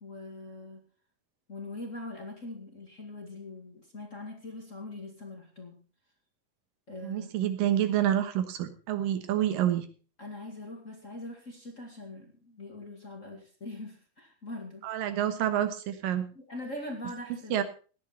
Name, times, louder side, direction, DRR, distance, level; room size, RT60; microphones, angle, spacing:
voice 1, 0.0-0.8 1.5-5.8 6.9-7.5 10.2-14.9 16.3-17.6, left 2 dB, 25° left, 1 dB, 1.9 m, -42 dB
voice 2, 7.0-9.9 14.8-16.3 17.5-17.6, right 11 dB, 80° right, 10 dB, 2.9 m, -28 dB
17.0 x 11.0 x 4.3 m, 0.37 s
omnidirectional pair, 4.0 m